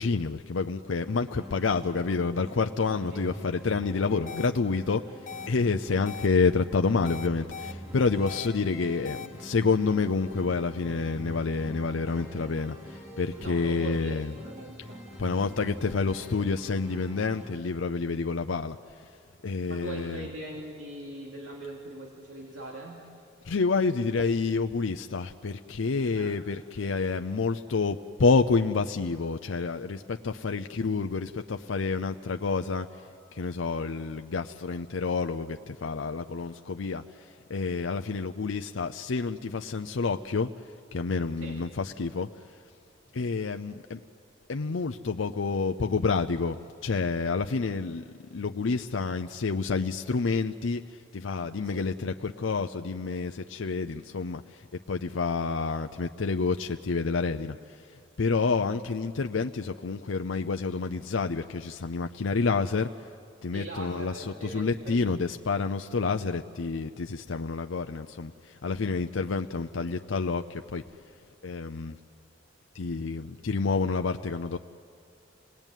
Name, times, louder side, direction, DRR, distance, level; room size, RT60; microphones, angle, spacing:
voice 1, 0.0-5.0 5.5-14.3 15.2-18.8 19.4-20.3 23.5-32.9 33.3-37.0 37.5-40.5 40.9-42.3 43.1-44.0 44.5-50.8 51.1-54.6 54.9-57.6 58.2-62.9 63.4-70.8 71.4-72.0 72.7-74.6, left 4 dB, 85° left, 6 dB, 0.6 m, -28 dB
sound 1, 1.0-17.5, equal, 15° right, 5.3 m, -44 dB
sound 2, 4.3-4.5 5.3-5.5 6.1-6.3 7.1-7.7 8.3-8.5 9.1-9.3, left 6 dB, 40° left, 0.9 m, -39 dB
voice 2, 13.4-15.0 19.7-23.1 26.1-26.4 41.4-41.5 43.0-43.1 51.6-51.8 63.5-65.1, right 1 dB, 70° right, -2 dB, 2.8 m, -41 dB
27.5 x 19.5 x 9.1 m, 2.5 s
head